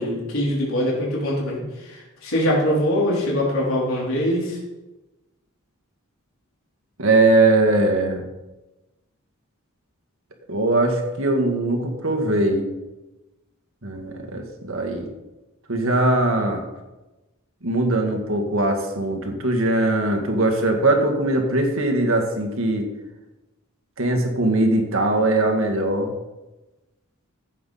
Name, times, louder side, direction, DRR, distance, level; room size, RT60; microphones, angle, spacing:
voice 1, 0.0-1.6 1.9-4.6, equal, 75° left, -5 dB, 3.9 m, -23 dB
voice 2, 7.0-8.2 10.5-12.7 13.8-15.1 15.7-16.6 17.6-22.9 24.0-26.1, right 2 dB, 70° right, 2 dB, 2.0 m, -21 dB
15.0 x 8.5 x 4.2 m, 1.1 s
head